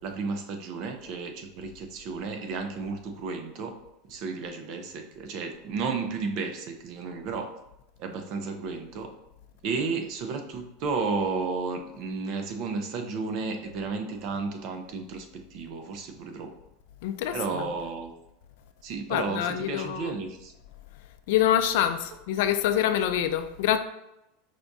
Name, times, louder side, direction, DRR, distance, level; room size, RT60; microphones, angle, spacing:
voice 1, 0.0-3.7 4.0-7.5 8.0-9.1 9.6-16.6 17.3-18.1 18.8-20.5, right 4 dB, 40° right, 0.5 m, -33 dB
voice 2, 17.0-17.7 19.1-20.2 21.3-23.8, left 10 dB, 60° left, 0.3 m, -26 dB
5.0 x 3.5 x 2.6 m
supercardioid pair, 165°, 0 cm